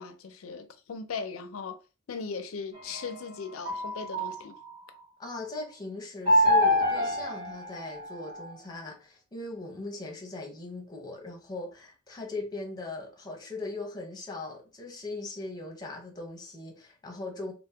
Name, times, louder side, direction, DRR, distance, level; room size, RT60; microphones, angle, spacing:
voice 1, 0.0-1.8 2.1-4.6, left 5 dB, 80° left, 0.4 m, -38 dB
sound 1, 2.7-5.0 6.3-8.5, left 1 dB, 25° right, 1.1 m, -27 dB
voice 2, 5.2-17.5, left 2 dB, 20° left, 0.8 m, -39 dB
2.8 x 2.0 x 3.3 m
head